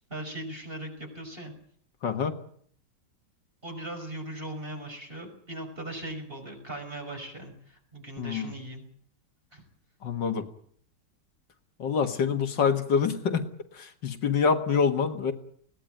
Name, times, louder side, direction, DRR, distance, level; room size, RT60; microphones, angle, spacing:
voice 1, 0.1-1.5 3.6-8.8 9.5-9.6, right 1 dB, 30° right, 2 dB, 6.0 m, -39 dB
voice 2, 2.0-2.3 8.2-8.5 10.0-10.4 11.8-13.5 13.7-15.3, left 6 dB, 80° left, 7 dB, 2.3 m, -26 dB
21.0 x 17.5 x 9.2 m, 0.62 s
omnidirectional pair, 1.9 m